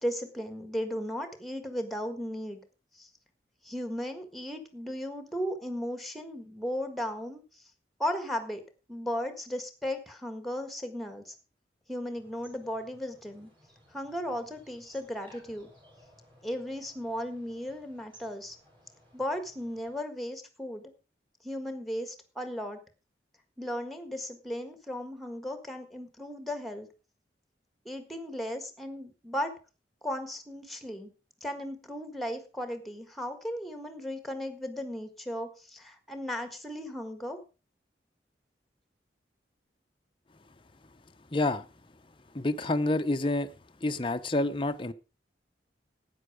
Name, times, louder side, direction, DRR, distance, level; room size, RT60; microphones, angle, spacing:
voice 1, 0.0-2.6 2.9-3.1 3.6-7.6 8.0-8.6 8.9-11.3 11.9-13.5 13.9-15.7 16.4-18.5 19.1-20.9 21.4-22.8 23.6-26.9 27.8-29.5 30.0-31.1 31.4-37.4, equal, ahead, 1.6 m, -36 dB
sound 1, 12.1-20.0, equal, 30° right, 6.7 m, -60 dB
voice 2, 41.3-41.7 42.3-43.5 43.8-44.9, left 2 dB, 30° left, 0.7 m, -28 dB
12.5 x 9.3 x 4.9 m
head